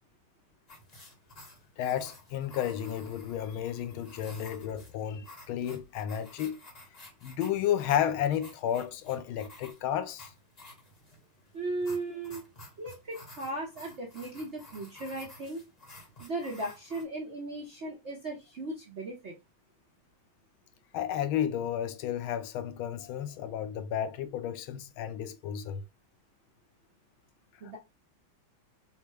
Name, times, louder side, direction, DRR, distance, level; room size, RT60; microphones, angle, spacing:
sound 1, 0.7-17.0, left 2 dB, 25° left, 0.9 m, -52 dB
voice 1, 1.8-6.6 7.2-10.3 20.9-25.8, left 10 dB, 80° left, 1.4 m, -32 dB
voice 2, 11.5-12.4 12.8-15.6 16.2-19.4 27.6-27.8, right 2 dB, 55° right, 0.8 m, -37 dB
5.5 x 2.0 x 4.7 m
omnidirectional pair, 2.3 m